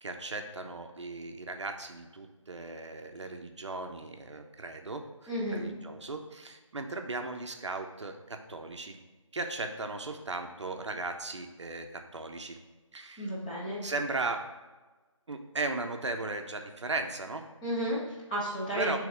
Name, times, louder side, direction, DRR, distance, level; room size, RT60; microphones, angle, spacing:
voice 1, 0.0-9.0 9.3-12.6 12.9-13.3 13.8-14.5 15.3-17.4 18.7-19.0, right 3 dB, 60° right, 5 dB, 0.6 m, -37 dB
voice 2, 5.3-5.7 13.2-13.8 17.6-19.0, equal, 15° left, -8 dB, 1.2 m, -33 dB
6.1 x 3.5 x 5.0 m, 1.2 s
figure-of-eight pair, 170°, 17 cm